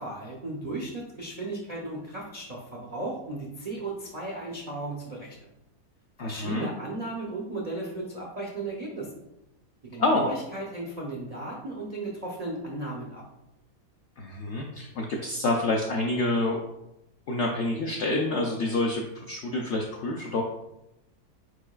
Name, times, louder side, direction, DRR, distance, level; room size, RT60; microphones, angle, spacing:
voice 1, 0.0-5.3 6.2-9.1 9.8-13.2, right 2 dB, 80° right, -3 dB, 0.3 m, -35 dB
voice 2, 6.2-6.7 10.0-10.2 14.2-16.6 17.3-20.4, left 2 dB, 80° left, 1 dB, 0.6 m, -27 dB
4.7 x 4.5 x 2.3 m, 0.89 s
omnidirectional pair, 1.7 m